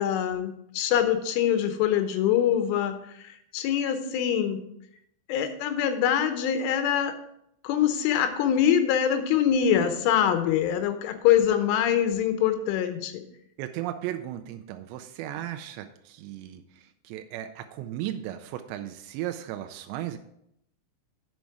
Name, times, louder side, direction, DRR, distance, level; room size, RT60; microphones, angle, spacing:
voice 1, 0.0-3.0 3.5-4.6 5.3-7.1 7.6-13.1, left 9 dB, 80° left, 8 dB, 3.3 m, -24 dB
voice 2, 13.6-16.6 17.0-20.2, right 12 dB, 85° right, 6 dB, 2.5 m, -35 dB
10.0 x 5.3 x 4.7 m, 0.75 s
omnidirectional pair, 5.6 m